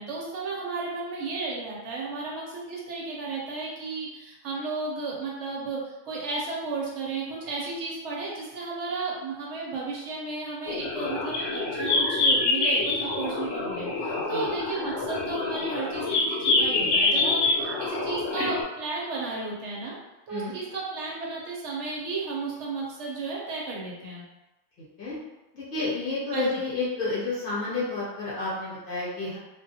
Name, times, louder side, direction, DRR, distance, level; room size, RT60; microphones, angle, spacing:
voice 1, 0.0-5.8 6.1-20.0 20.3-24.2 26.3-26.5, right 3 dB, 70° right, -4 dB, 1.0 m, -33 dB
sound 1, 10.7-18.6, left 3 dB, 70° left, 0.8 m, -26 dB
voice 2, 24.8-25.2 25.5-29.4, left 3 dB, 50° left, -8 dB, 1.1 m, -30 dB
2.4 x 2.3 x 2.7 m, 1.0 s
omnidirectional pair, 1.3 m